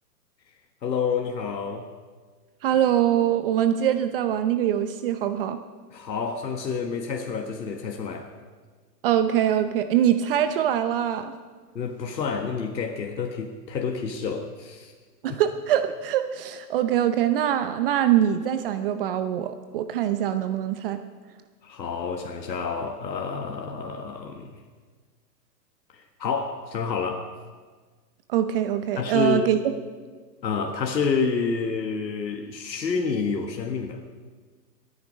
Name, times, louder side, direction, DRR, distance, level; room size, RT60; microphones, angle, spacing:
voice 1, 0.8-1.9 5.9-8.3 11.7-14.9 15.3-15.4 21.6-24.6 25.9-27.3 29.0-29.5 30.4-34.0, left 5 dB, 85° left, 3 dB, 1.6 m, -29 dB
voice 2, 2.6-5.6 9.0-11.3 15.2-21.0 28.3-29.6, right 10 dB, 35° right, 10 dB, 0.7 m, -23 dB
24.0 x 9.6 x 5.1 m, 1.5 s
hypercardioid pair, 135°, 50 cm